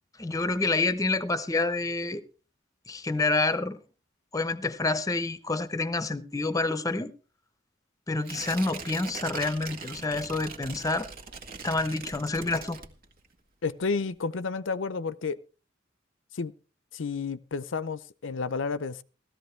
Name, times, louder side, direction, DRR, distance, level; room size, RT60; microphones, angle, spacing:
voice 1, 0.2-2.2 2.9-3.8 4.3-7.1 8.1-11.1 11.6-12.8, left 3 dB, 20° left, 0.9 m, -28 dB
Tearing, 8.2-13.3 13.7-13.8, right 5 dB, 50° right, 1.8 m, -41 dB
voice 2, 13.6-15.4 16.3-16.5 16.9-19.0, left 4 dB, 70° left, 0.6 m, -31 dB
16.0 x 14.0 x 3.3 m
head